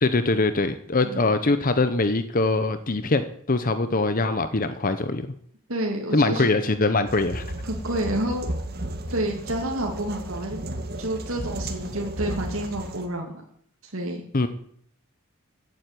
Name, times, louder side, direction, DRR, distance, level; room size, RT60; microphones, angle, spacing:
voice 1, 0.0-5.3 6.1-7.4 14.3-14.5, left 3 dB, 40° left, 10 dB, 0.9 m, -23 dB
voice 2, 5.7-6.5 7.6-8.5 9.1-10.6 11.0-13.3 13.8-14.2, right 1 dB, 70° right, 1 dB, 2.6 m, -29 dB
sound 1, 7.1-13.1, right 1 dB, 45° right, 1.9 m, -34 dB
15.0 x 9.4 x 9.2 m, 0.65 s
head